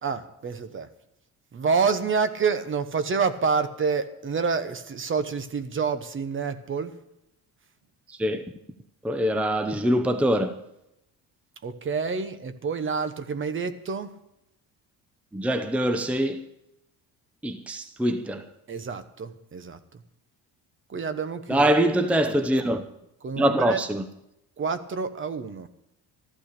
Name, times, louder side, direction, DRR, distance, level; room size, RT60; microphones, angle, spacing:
voice 1, 0.0-0.9 1.5-7.0 11.6-14.1 18.7-20.0 20.9-21.7 23.2-23.8 24.6-25.7, right 5 dB, 30° right, 1.0 m, -28 dB
voice 2, 9.0-10.6 15.3-16.5 17.4-18.4 21.5-22.8 23.4-24.0, equal, 5° right, 0.7 m, -24 dB
14.0 x 12.0 x 6.7 m
cardioid pair, 130°, 39 cm